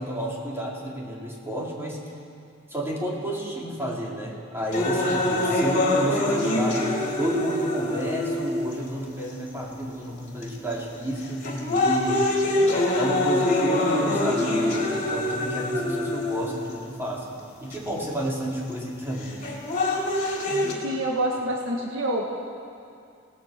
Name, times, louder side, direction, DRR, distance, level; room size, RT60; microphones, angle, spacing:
voice 1, 0.0-2.0 2.7-6.9 7.2-12.3 12.9-19.5, equal, 10° right, -4 dB, 4.4 m, -31 dB
sound 1, 4.7-8.7 9.5-9.6 10.4-10.7 11.2-16.7 17.7-17.8 19.2-20.7, left 1 dB, 40° left, 4.0 m, -24 dB
voice 2, 20.8-22.2, right 1 dB, 65° right, -1 dB, 2.0 m, -27 dB
28.0 x 19.5 x 6.2 m, 2.4 s
head